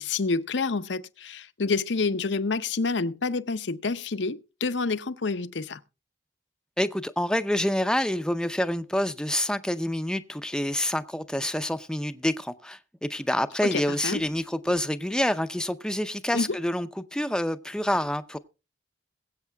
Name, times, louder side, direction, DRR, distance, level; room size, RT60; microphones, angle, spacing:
voice 1, 0.0-5.8 13.6-14.2 16.3-16.6, left 4 dB, 70° left, 0.7 m, -28 dB
voice 2, 6.8-18.4, left 1 dB, 5° left, 0.5 m, -27 dB
22.0 x 8.3 x 2.3 m
head